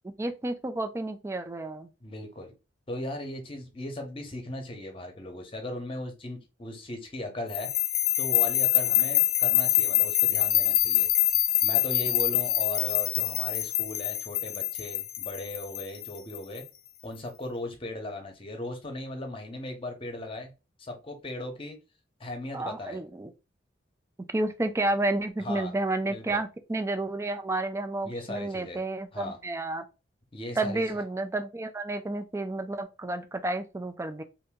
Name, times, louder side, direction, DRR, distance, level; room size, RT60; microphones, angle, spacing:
voice 1, 0.2-1.9 22.5-23.3 24.3-29.8 30.6-34.2, right 2 dB, 15° right, 0.3 m, -31 dB
voice 2, 2.0-2.5 2.9-7.7 8.2-11.1 11.6-16.7 17.0-20.5 20.8-21.8 22.2-23.0 25.4-25.7 26.1-26.4 28.0-28.8 29.1-29.4 30.3-30.8, left 1 dB, 30° left, 0.8 m, -37 dB
sound 1, 7.5-16.6, left 14 dB, 50° left, 0.4 m, -25 dB
2.8 x 2.6 x 3.4 m
head